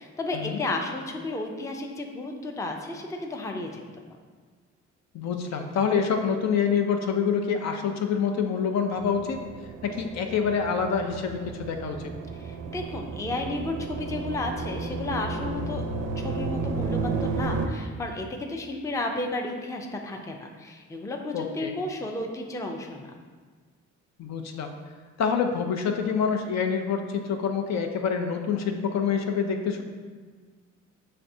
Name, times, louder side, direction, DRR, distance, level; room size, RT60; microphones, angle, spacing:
voice 1, 0.0-3.8 12.4-15.8 16.2-23.1, left 2 dB, 10° left, 2 dB, 0.4 m, -33 dB
voice 2, 5.1-9.4 9.8-12.0 21.3-21.7 24.2-24.7 25.2-29.8, left 6 dB, 60° left, 4 dB, 0.5 m, -26 dB
sound 1, 9.0-17.7, right 4 dB, 55° right, 0.5 m, -33 dB
5.9 x 3.3 x 2.7 m, 1.5 s
cardioid pair, 90°, 30 cm